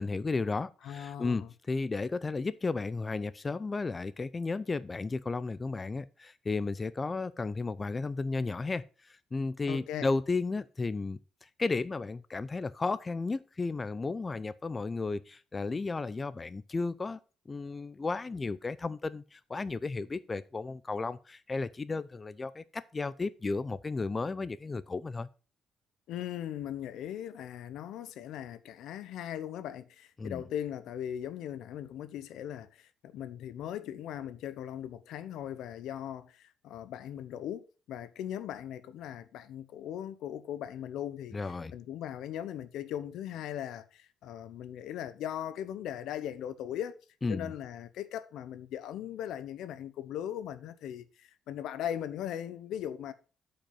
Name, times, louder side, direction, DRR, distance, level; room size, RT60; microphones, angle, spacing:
voice 1, 0.0-17.2 17.5-25.3 30.2-30.4 41.3-41.7 47.2-47.5, left 3 dB, 25° left, 0.5 m, -34 dB
voice 2, 0.8-1.5 9.7-10.1 26.1-47.0 47.3-53.1, left 10 dB, 85° left, 0.9 m, -39 dB
8.8 x 5.4 x 5.4 m
cardioid pair, 115°, 0 cm